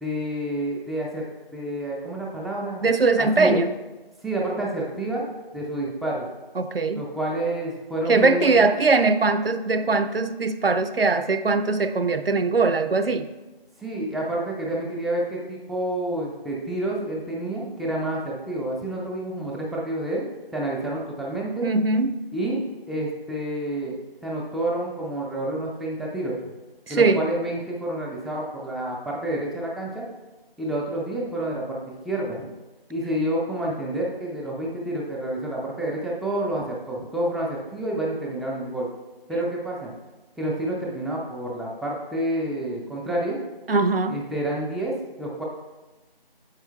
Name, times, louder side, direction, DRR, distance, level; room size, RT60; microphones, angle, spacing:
voice 1, 0.0-1.3 1.5-2.8 3.2-3.6 4.2-5.3 5.5-6.3 6.9-8.7 13.8-20.2 20.5-21.7 22.3-22.6 22.9-23.9 24.2-26.4 26.9-30.1 30.6-31.8 32.0-32.5 32.9-38.9 39.3-39.9 40.4-43.4 44.1-45.4, right 1 dB, ahead, -3 dB, 0.5 m, -29 dB
voice 2, 2.8-3.7 6.6-7.0 8.1-13.3 21.6-22.2 26.9-27.2 43.7-44.2, right 3 dB, 70° right, 10 dB, 0.5 m, -21 dB
8.7 x 7.1 x 2.2 m, 1.1 s
figure-of-eight pair, 170°, 30 cm